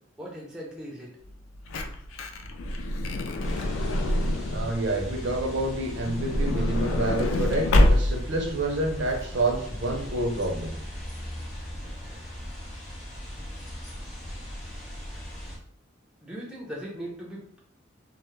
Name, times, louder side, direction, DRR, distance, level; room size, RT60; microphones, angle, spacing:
voice 1, 0.2-1.1 16.2-17.6, equal, 5° right, -4 dB, 0.4 m, -39 dB
Truck / Door, 1.3-4.8 5.9-8.4 9.1-9.2 9.4-9.5, left 1 dB, 85° left, 0.3 m, -25 dB
sound 1, 3.4-15.6, equal, 35° left, 0.7 m, -38 dB
voice 2, 4.5-10.8, right 2 dB, 65° right, 2 dB, 0.5 m, -28 dB
2.1 x 2.0 x 3.0 m, 0.62 s
head